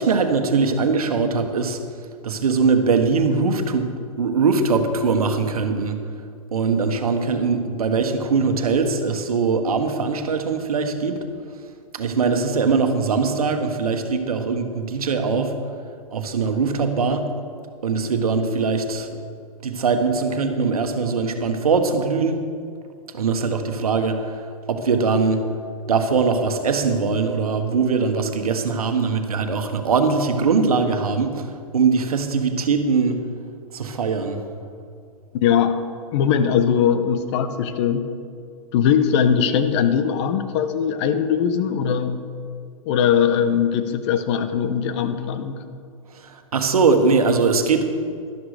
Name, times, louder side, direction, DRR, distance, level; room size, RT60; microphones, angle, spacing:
voice 1, 0.0-1.8 2.2-3.9 4.2-6.0 6.5-11.2 11.9-15.5 16.1-17.3 17.8-19.2 19.6-22.5 23.1-24.4 24.7-25.4 25.9-33.2 33.7-34.4 46.1-47.9, right 4 dB, 75° right, 6 dB, 1.4 m, -21 dB
voice 2, 35.3-35.8 36.1-38.1 38.7-42.2 42.9-45.6, left 8 dB, 50° left, 10 dB, 1.1 m, -20 dB
12.5 x 11.0 x 5.0 m, 2.2 s
hypercardioid pair, 110°, 19 cm